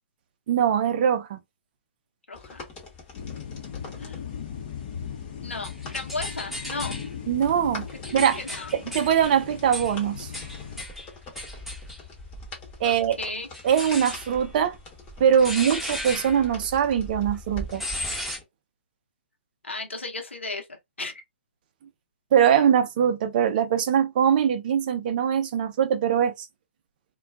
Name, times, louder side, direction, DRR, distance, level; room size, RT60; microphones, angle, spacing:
voice 1, 0.5-1.4 7.3-7.9 8.1-8.4 8.9-10.3 12.8-13.2 13.6-14.8 15.2-17.8 22.3-26.5, right 8 dB, 45° right, 0.6 m, -22 dB
voice 2, 2.3-2.7 4.0-4.2 5.4-7.0 8.1-8.7 12.8-13.5 19.6-21.2, left 3 dB, 85° left, 0.9 m, -35 dB
sound 1, 2.3-18.4, left 4 dB, 25° left, 1.1 m, -45 dB
sound 2, 3.1-10.8, left 8 dB, 45° left, 0.8 m, -38 dB
sound 3, 5.0-7.1 7.7-12.8 13.5-18.4, equal, ahead, 0.8 m, -36 dB
2.4 x 2.3 x 2.3 m
figure-of-eight pair, 125°, 6 cm